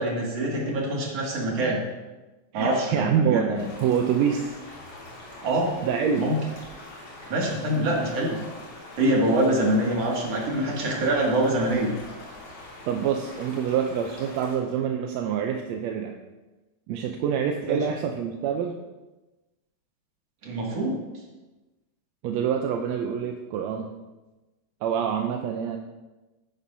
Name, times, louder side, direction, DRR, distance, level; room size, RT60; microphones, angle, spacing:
voice 1, 0.0-1.8 2.5-3.6 5.4-5.7 6.2-6.4 7.3-8.4 9.0-11.9 17.7-17.8 20.4-21.0, right 1 dB, 60° right, -2 dB, 3.2 m, -25 dB
voice 2, 2.5-4.6 5.8-6.3 12.9-16.1 16.9-18.8 22.2-23.9 24.8-25.8, right 7 dB, 75° right, 3 dB, 1.8 m, -26 dB
sound 1, 3.5-14.6, left 2 dB, 50° left, 4.0 m, -43 dB
14.5 x 10.5 x 2.7 m, 1.1 s
omnidirectional pair, 3.4 m